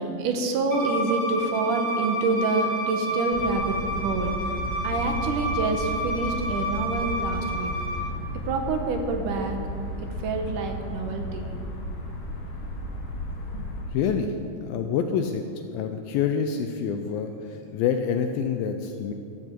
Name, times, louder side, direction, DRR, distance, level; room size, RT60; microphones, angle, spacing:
voice 1, 0.0-7.7 8.4-9.6 10.0-11.6, right 3 dB, 70° right, 4 dB, 2.1 m, -27 dB
Bowed string instrument, 0.7-8.0, equal, 35° left, 3.3 m, -30 dB
sound 1, 3.3-13.8, equal, 65° left, 3.7 m, -34 dB
voice 2, 13.5-19.1, left 7 dB, 80° left, 6 dB, 2.2 m, -27 dB
14.5 x 13.0 x 4.5 m, 2.6 s
omnidirectional pair, 4.6 m